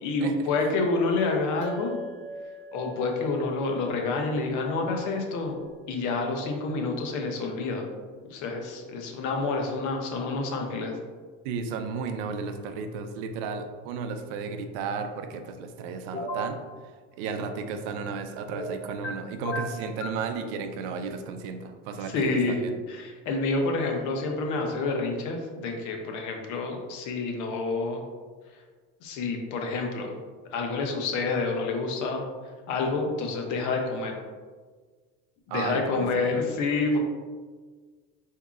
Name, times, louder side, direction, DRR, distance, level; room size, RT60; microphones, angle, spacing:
voice 1, 0.0-2.0 2.7-5.6 5.9-7.9 8.2-11.0 22.1-22.6 22.9-28.0 29.0-30.2 30.5-32.2 32.7-34.2 35.5-37.0, left 3 dB, 65° left, 2 dB, 0.8 m, -28 dB
sound 1, 1.6-6.3, equal, 35° right, 0.6 m, -44 dB
voice 2, 11.4-16.6 17.2-22.7 35.5-36.4, right 5 dB, 85° right, 7 dB, 0.5 m, -34 dB
sound 2, 16.1-16.5 18.5-19.1 19.4-20.2, equal, 35° left, 0.8 m, -33 dB
4.7 x 2.8 x 2.4 m, 1.5 s
supercardioid pair, 105°, 31 cm